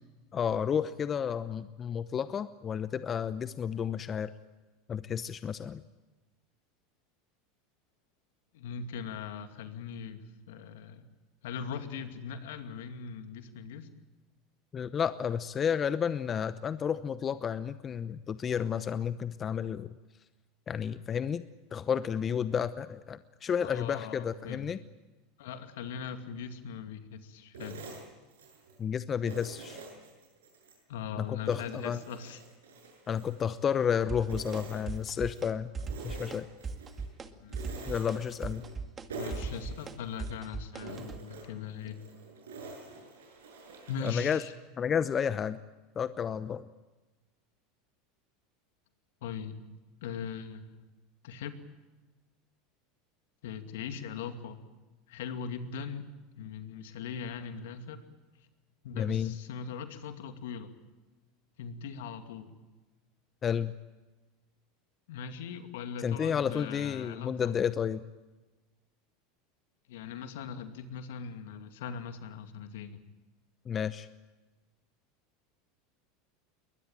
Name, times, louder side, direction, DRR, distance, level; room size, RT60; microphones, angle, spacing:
voice 1, 0.3-4.3 4.9-5.8 14.7-19.9 20.7-21.4 21.7-24.8 28.8-29.8 31.2-32.0 33.1-35.7 36.0-36.5 37.9-38.6 44.0-44.4 44.8-45.6 46.0-46.6 58.9-59.3 63.4-63.7 66.0-68.0 73.7-74.1, left 7 dB, 30° left, 14 dB, 0.8 m, -31 dB
voice 2, 8.5-11.1 11.4-13.9 23.6-24.7 25.4-27.8 30.9-32.4 37.3-37.8 39.1-42.0 43.9-44.5 49.2-49.6 50.0-50.8 51.2-51.6 53.4-54.6 55.1-56.1 56.4-58.0 58.8-60.7 61.6-62.5 65.1-67.5 69.9-73.0, left 6 dB, 75° left, 8 dB, 2.3 m, -40 dB
sound 1, 27.5-28.8 29.2-30.8 31.2-33.9 34.2-35.5 35.8-37.1 37.5-38.8 39.1-40.4 40.8-44.3, right 3 dB, 85° right, 7.7 m, -47 dB
sound 2, 34.1-34.6 34.9-35.5 35.7-36.4 36.6-37.3 37.5-41.2, right 4 dB, 25° right, 2.1 m, -38 dB
22.5 x 20.5 x 9.0 m, 1.2 s
hypercardioid pair, 95°, 0 cm